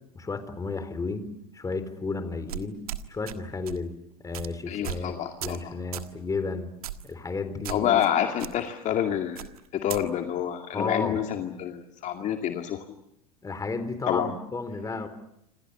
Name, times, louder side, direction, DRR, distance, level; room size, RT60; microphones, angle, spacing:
voice 1, 0.1-2.8 3.1-3.9 4.2-6.7 7.0-7.9 10.7-11.2 13.4-15.1, left 3 dB, 20° left, 11 dB, 3.8 m, -33 dB
sound 1, 2.5-3.4 3.7-3.9 4.3-4.5 4.8-5.1 5.4-5.6 5.9-6.1 6.8-7.1 7.6-8.1 8.4-8.5 9.4-10.0, right 11 dB, 75° right, 1.6 m, -36 dB
voice 2, 4.7-5.6 7.7-9.5 9.7-12.8 14.1-14.3, left 10 dB, 40° left, 5 dB, 2.3 m, -28 dB
28.0 x 26.5 x 6.8 m, 0.81 s
hypercardioid pair, 85°, 19 cm